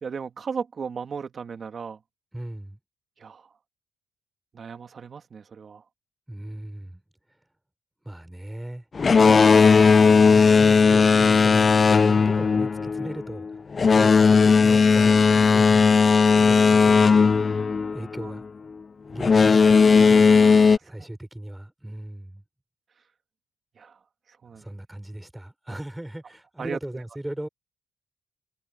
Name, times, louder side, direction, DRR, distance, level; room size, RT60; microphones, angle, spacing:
voice 1, 0.0-2.0 3.2-3.5 4.5-5.8 18.2-18.3 20.4-20.8 23.8-24.0 24.4-24.6 25.7-25.8 26.6-26.8, right 6 dB, 45° right, 2.6 m, -36 dB
voice 2, 2.3-2.8 6.3-7.0 8.0-8.9 10.3-13.6 13.9-16.1 16.4-17.7 17.9-18.4 19.1-20.3 20.8-22.4 24.5-27.5, right 1 dB, 5° right, 6.3 m, -37 dB
Boat Water vehicle, 8.9-18.4 19.2-20.8, left 5 dB, 35° left, 0.3 m, -17 dB
cardioid pair, 90°, 0 cm